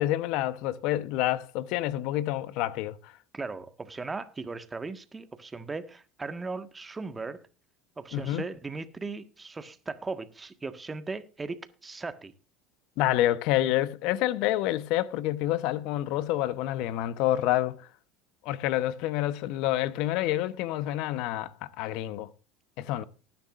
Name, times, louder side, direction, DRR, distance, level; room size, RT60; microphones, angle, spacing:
voice 1, 0.0-3.1 8.1-8.4 13.0-17.8 18.4-22.3 22.8-23.0, left 14 dB, 65° left, 0.9 m, -28 dB
voice 2, 3.3-7.4 8.0-12.3, right 3 dB, 20° right, 1.6 m, -37 dB
19.0 x 10.5 x 2.5 m
supercardioid pair, 90°, 0 cm